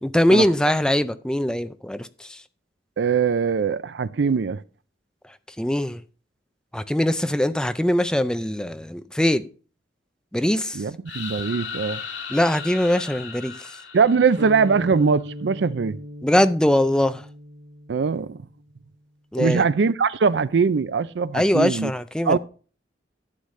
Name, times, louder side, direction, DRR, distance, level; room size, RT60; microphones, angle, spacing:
voice 1, 0.0-2.4 5.6-6.0 6.7-9.5 10.3-10.8 12.3-13.7 16.2-17.2 19.3-19.6 21.3-22.4, left 1 dB, 5° left, 0.4 m, -22 dB
voice 2, 3.0-4.6 10.7-12.0 13.9-16.0 17.9-18.4 19.4-21.9 22.3-22.4, right 5 dB, 75° right, 0.4 m, -21 dB
sound 1, 11.1-14.9, left 6 dB, 80° left, 2.3 m, -36 dB
sound 2, 14.4-18.6, left 1 dB, 55° right, 2.2 m, -38 dB
11.5 x 8.0 x 3.2 m
head